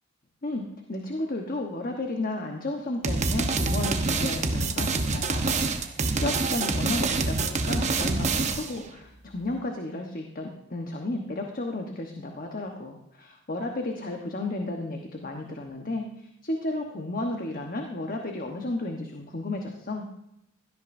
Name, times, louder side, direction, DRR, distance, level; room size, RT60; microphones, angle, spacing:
voice 1, 0.4-20.1, left 2 dB, 45° left, 3 dB, 1.1 m, -33 dB
sound 1, 3.0-8.8, right 3 dB, 35° right, 1.0 m, -26 dB
17.0 x 13.0 x 2.7 m, 0.83 s
head